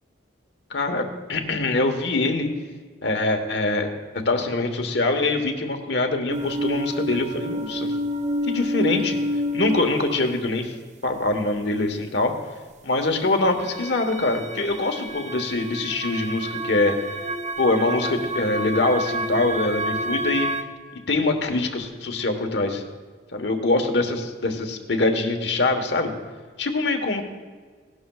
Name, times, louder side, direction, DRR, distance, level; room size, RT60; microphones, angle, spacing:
voice 1, 0.7-2.5 3.0-3.9 4.2-8.0 8.4-9.2 9.5-10.7 11.0-12.3 12.8-16.9 17.6-20.5 21.1-22.8 23.3-26.1 26.6-27.2, left 2 dB, 65° left, 5 dB, 1.3 m, -24 dB
sound 1, 6.3-10.3 13.6-20.6, equal, 40° right, 0.7 m, -29 dB
17.5 x 11.5 x 2.4 m, 1.5 s
head